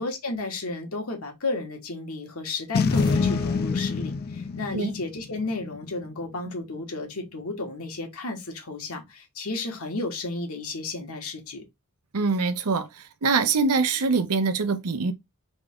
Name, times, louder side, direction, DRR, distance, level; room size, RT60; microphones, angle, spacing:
voice 1, 0.0-11.6, left 3 dB, 75° left, 1.5 m, -33 dB
Boom, 2.7-6.1, left 4 dB, 45° left, 0.4 m, -26 dB
sound 1, 2.9-4.5, left 3 dB, 20° left, 0.7 m, -35 dB
voice 2, 12.1-15.1, right 4 dB, 90° right, 0.7 m, -24 dB
3.6 x 3.6 x 3.5 m
head